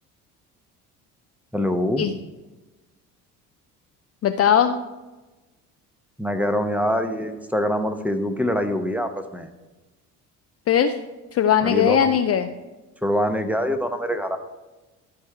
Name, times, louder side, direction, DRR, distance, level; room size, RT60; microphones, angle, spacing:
voice 1, 1.5-2.0 6.2-9.5 11.6-12.2 13.0-14.4, equal, 5° right, 7 dB, 0.9 m, -24 dB
voice 2, 4.2-4.8 10.7-11.0 11.3-12.5, left 9 dB, 35° left, 7 dB, 0.5 m, -19 dB
13.0 x 4.7 x 4.5 m, 1.2 s
hypercardioid pair, 60°, 45 cm